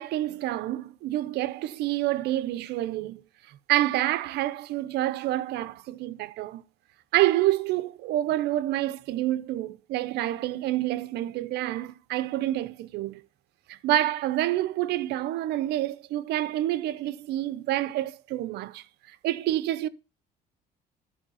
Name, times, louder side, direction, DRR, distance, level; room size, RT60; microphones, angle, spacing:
voice 1, 0.0-3.2 3.5-6.6 7.1-13.2 13.7-19.9, right 14 dB, 80° right, 0.7 m, -28 dB
11.5 x 4.8 x 5.5 m
cardioid pair, 110°, 17 cm